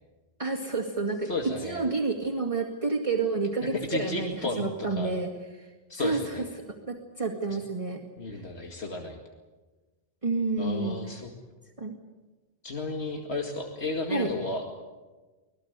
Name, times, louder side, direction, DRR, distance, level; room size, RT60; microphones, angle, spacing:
voice 1, 0.4-5.3 5.6-5.7 5.9-8.0 8.3-8.4 10.2-11.0 11.8-12.0 14.1-14.3, right 3 dB, 30° right, -2 dB, 2.2 m, -29 dB
voice 2, 1.3-1.8 3.6-5.1 5.9-6.4 7.5-7.6 8.2-9.2 10.6-11.3 12.6-14.6, left 2 dB, 85° left, 2 dB, 2.4 m, -33 dB
25.5 x 18.5 x 8.1 m, 1.2 s
omnidirectional pair, 1.1 m